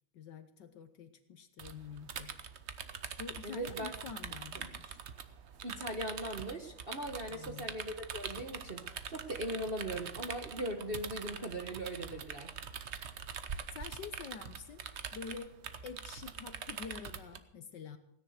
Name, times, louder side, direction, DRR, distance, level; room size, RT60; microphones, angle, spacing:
voice 1, 0.1-2.3 3.2-5.0 7.3-7.8 13.7-14.8 15.1-15.6 15.8-18.0, left 6 dB, 60° left, 10 dB, 1.3 m, -47 dB
sound 1, 1.6-17.4, right 7 dB, 65° right, 0.6 m, -44 dB
voice 2, 3.4-3.9 4.5-4.7 5.6-12.5, right 1 dB, 35° right, 3 dB, 1.0 m, -39 dB
17.0 x 10.0 x 6.5 m, 0.78 s
omnidirectional pair, 2.4 m